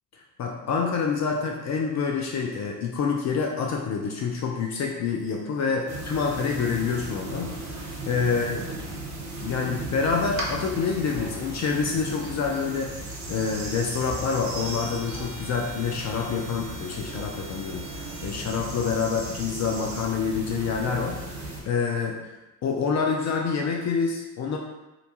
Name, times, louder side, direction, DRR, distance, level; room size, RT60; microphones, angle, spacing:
voice 1, 0.1-8.6 9.4-12.9 13.3-22.2 22.6-24.6, left 5 dB, 40° left, 1 dB, 0.4 m, -27 dB
sound 1, 5.9-21.6, right 2 dB, 40° right, 0.9 m, -36 dB
2.5 x 2.2 x 2.8 m, 1.0 s
hypercardioid pair, 55°, 46 cm